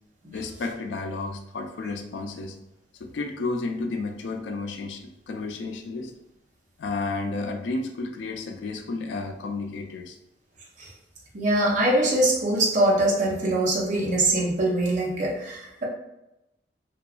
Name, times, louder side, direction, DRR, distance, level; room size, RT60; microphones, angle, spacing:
voice 1, 0.3-2.6 3.0-6.1 6.8-10.2, left 3 dB, 85° left, 4 dB, 0.3 m, -32 dB
voice 2, 11.3-15.8, right 1 dB, 45° right, -3 dB, 0.5 m, -23 dB
2.7 x 2.3 x 2.3 m, 0.90 s
head